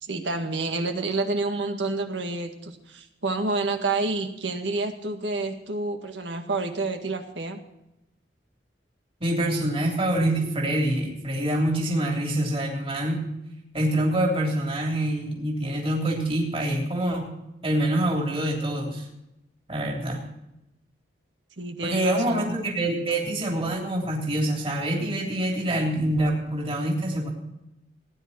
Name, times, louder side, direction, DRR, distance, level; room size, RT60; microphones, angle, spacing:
voice 1, 0.0-7.6 21.6-22.6, right 3 dB, 85° right, 5 dB, 1.8 m, -29 dB
voice 2, 9.2-13.3 13.7-17.3 17.6-19.1 19.7-20.2 21.8-27.3, right 1 dB, 35° right, -1 dB, 3.3 m, -25 dB
18.0 x 10.0 x 4.3 m, 0.89 s
head